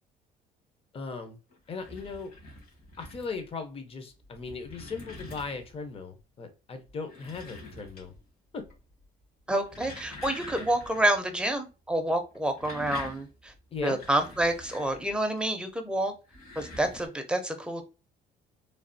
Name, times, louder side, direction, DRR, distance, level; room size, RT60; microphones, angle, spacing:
voice 1, 0.9-1.4 1.7-2.3 3.0-8.1 13.7-14.0, left 4 dB, 35° left, 7 dB, 0.7 m, -38 dB
sound 1, 1.5-3.5 4.2-5.9 6.9-8.3 8.6-9.0 9.5-11.2 11.4-11.5 12.3-15.4 16.2-17.1, left 2 dB, 60° left, 1.6 m, -45 dB
voice 2, 9.5-13.5 13.8-16.1 16.6-17.8, right 1 dB, 5° right, 5 dB, 0.6 m, -28 dB
3.3 x 2.3 x 2.6 m, 0.31 s
cardioid pair, 110°, 17 cm